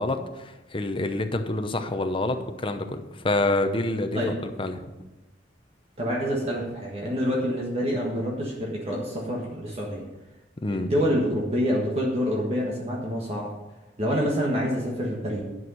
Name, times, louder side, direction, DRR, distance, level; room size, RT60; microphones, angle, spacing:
voice 1, 0.0-4.8 10.6-10.9, left 2 dB, 30° left, 7 dB, 0.7 m, -27 dB
voice 2, 6.0-10.0 10.7-13.5 14.0-15.4, equal, 35° right, -3 dB, 1.5 m, -27 dB
10.5 x 6.3 x 5.5 m, 1.0 s
head